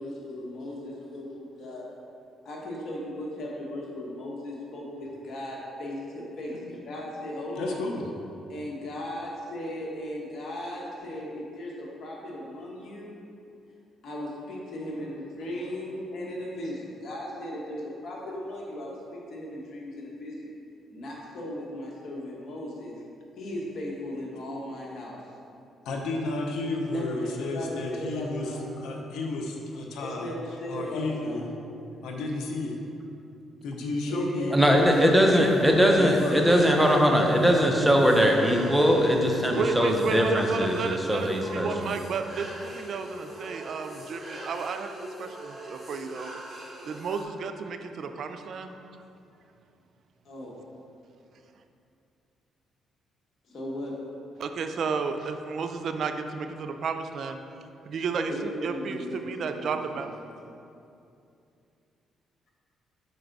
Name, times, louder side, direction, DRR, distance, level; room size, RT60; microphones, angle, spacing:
voice 1, 0.0-1.9 2.4-7.8 8.5-13.1 14.0-20.5 20.9-23.0 23.4-25.2 26.9-28.7 30.0-31.4 34.0-34.9 35.9-37.9 38.2-39.2 50.2-50.5 53.5-54.0 58.3-60.1, left 1 dB, 60° left, -3 dB, 1.3 m, -36 dB
voice 2, 7.6-8.1 25.8-30.3 30.7-31.5 32.0-32.8 33.6-34.8 35.3-36.7, left 2 dB, 85° left, 1 dB, 0.7 m, -32 dB
voice 3, 34.5-41.7, equal, 5° right, 1 dB, 0.7 m, -21 dB
sound 1, 34.8-47.2, right 1 dB, 25° right, 1.2 m, -42 dB
voice 4, 39.5-46.3 46.9-49.0 54.4-57.4 57.9-60.1, right 5 dB, 60° right, 7 dB, 0.4 m, -32 dB
5.3 x 4.5 x 3.9 m, 2.6 s
cardioid pair, 90°, 0 cm